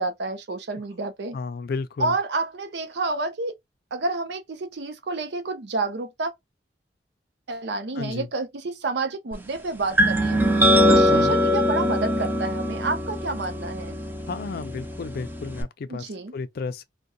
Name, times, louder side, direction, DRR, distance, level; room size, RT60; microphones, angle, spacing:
voice 1, 0.0-1.4 2.0-3.5 3.9-6.3 7.5-10.4 10.9-14.0 15.9-16.3, right 3 dB, 70° right, 0.6 m, -29 dB
voice 2, 1.3-2.2 8.0-8.3 11.1-11.4 14.3-16.8, left 4 dB, 60° left, 0.4 m, -33 dB
sound 1, 10.0-15.6, equal, 10° right, 0.4 m, -22 dB
2.7 x 2.2 x 2.5 m
head